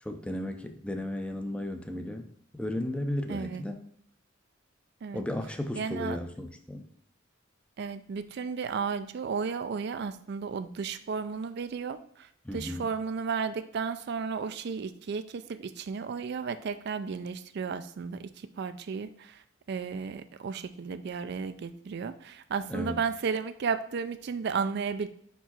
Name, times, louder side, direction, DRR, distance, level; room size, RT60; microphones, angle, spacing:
voice 1, 0.0-2.3 2.5-3.8 5.1-6.9 12.4-12.9 22.7-23.0, left 1 dB, 5° left, 6 dB, 0.5 m, -34 dB
voice 2, 3.3-3.6 5.0-5.3 5.8-6.2 7.8-12.0 12.5-18.3 18.6-19.4 19.7-25.1, right 5 dB, 60° right, 11 dB, 0.4 m, -33 dB
5.0 x 4.6 x 4.2 m, 0.66 s
head